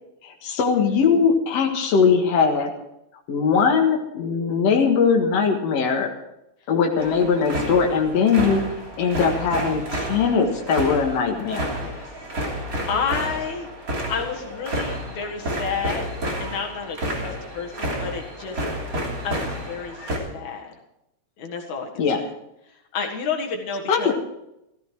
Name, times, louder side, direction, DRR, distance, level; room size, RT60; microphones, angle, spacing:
voice 1, 0.2-2.7 3.3-6.1 6.7-8.6 9.0-11.7 22.0-22.2 23.9-24.1, left 5 dB, 60° left, 1 dB, 2.7 m, -20 dB
sound 1, 7.0-20.2, equal, 30° right, 3.4 m, -30 dB
voice 2, 11.8-12.1 12.9-16.1 16.4-18.6 19.2-20.7 21.4-22.3 22.9-24.1, left 5 dB, 80° left, 2 dB, 3.1 m, -31 dB
15.5 x 14.5 x 4.7 m, 0.85 s
omnidirectional pair, 3.3 m